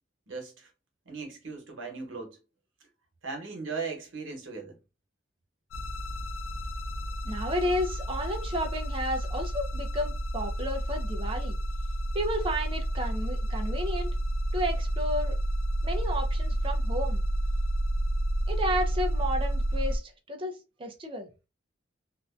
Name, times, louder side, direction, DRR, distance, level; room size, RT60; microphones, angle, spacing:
voice 1, 0.3-0.7 1.0-2.4 3.2-4.8, right 4 dB, 85° right, 1.0 m, -38 dB
sound 1, 5.7-20.0, right 1 dB, 90° left, 0.4 m, -30 dB
voice 2, 7.2-11.6 12.1-14.2 14.5-15.4 15.8-17.2 18.5-21.3, equal, 25° right, 0.4 m, -32 dB
2.5 x 2.1 x 2.4 m
head